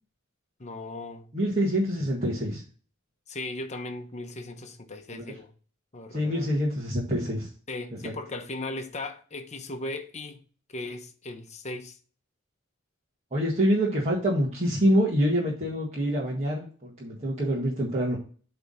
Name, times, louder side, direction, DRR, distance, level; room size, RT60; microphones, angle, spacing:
voice 1, 0.6-1.3 3.3-5.5 5.9-6.5 7.7-10.4 10.7-12.0, left 2 dB, 35° left, 1.0 m, -37 dB
voice 2, 1.3-2.6 5.1-5.2 6.1-7.5 8.0-8.1 13.3-18.2, equal, 35° right, 1.7 m, -26 dB
8.2 x 3.5 x 5.5 m
head